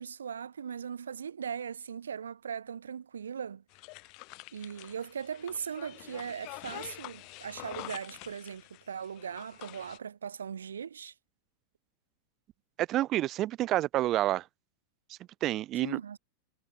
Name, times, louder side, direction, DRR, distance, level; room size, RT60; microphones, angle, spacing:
voice 1, 0.0-3.6 4.5-11.1 15.8-16.2, right 7 dB, 70° right, 1.3 m, -39 dB
sound 1, 3.7-10.0, left 28 dB, 45° left, 1.4 m, -47 dB
voice 2, 12.8-14.4 15.4-16.0, right 14 dB, 35° right, 0.7 m, -28 dB
figure-of-eight pair, 90°, 0 cm